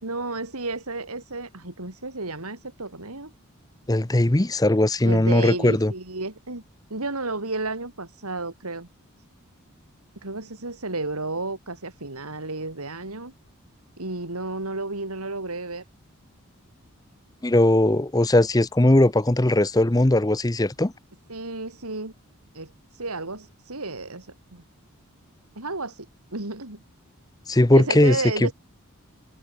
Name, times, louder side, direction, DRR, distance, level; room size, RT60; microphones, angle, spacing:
voice 1, 0.0-3.3 5.0-6.6 6.9-8.9 10.2-13.3 14.0-15.8 21.3-22.1 22.5-24.6 25.6-26.1 26.3-26.8 27.7-28.5, right 2 dB, 90° right, 4.0 m, -32 dB
voice 2, 3.9-5.9 17.4-20.9 27.5-28.2, left 1 dB, 15° left, 0.7 m, -19 dB
head